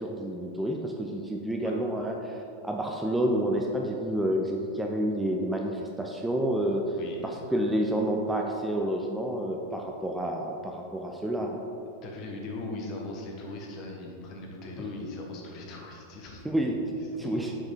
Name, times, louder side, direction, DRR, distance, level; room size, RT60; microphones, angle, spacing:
voice 1, 0.0-6.9 7.2-11.6 16.4-16.8 17.2-17.5, right 1 dB, 5° right, 1 dB, 0.4 m, -29 dB
voice 2, 6.9-7.4 12.0-16.4 17.1-17.4, left 2 dB, 40° left, 0 dB, 1.2 m, -39 dB
6.1 x 4.7 x 4.3 m, 2.7 s
figure-of-eight pair, 90°, 0 cm